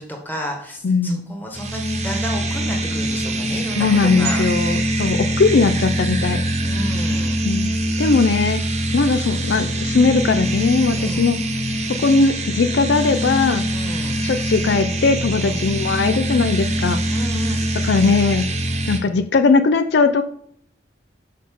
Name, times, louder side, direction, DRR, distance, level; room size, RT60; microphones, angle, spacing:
voice 1, 0.0-4.4 5.0-5.4 6.6-7.4 11.0-11.3 13.7-14.2 15.4-15.6 17.1-17.6, equal, 10° left, 1 dB, 1.5 m, -32 dB
voice 2, 0.8-1.3 3.8-6.4 7.4-7.7 8.0-8.6 8.9-11.4 12.0-13.7 14.2-17.0 17.8-18.5 18.9-20.2, left 4 dB, 65° left, 9 dB, 0.4 m, -19 dB
sound 1, 1.5-19.0, right 1 dB, 35° right, 1.0 m, -23 dB
6.4 x 5.6 x 3.7 m, 0.68 s
head